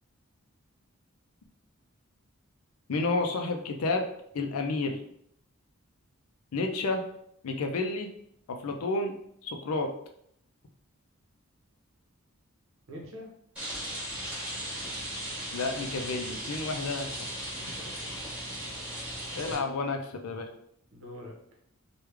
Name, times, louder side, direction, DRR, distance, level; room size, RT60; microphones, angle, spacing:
voice 1, 2.9-4.0 4.3-5.0 6.5-7.0 7.4-8.1 8.5-9.1 9.4-9.9 15.5-17.3 19.3-20.5, left 3 dB, 80° left, 4 dB, 0.5 m, -30 dB
voice 2, 12.9-13.3 17.6-18.3 19.0-19.6 20.9-21.4, equal, 60° right, -1 dB, 0.8 m, -46 dB
Rain, 13.6-19.5, right 1 dB, 5° right, 1.2 m, -37 dB
3.1 x 2.3 x 3.4 m, 0.71 s
head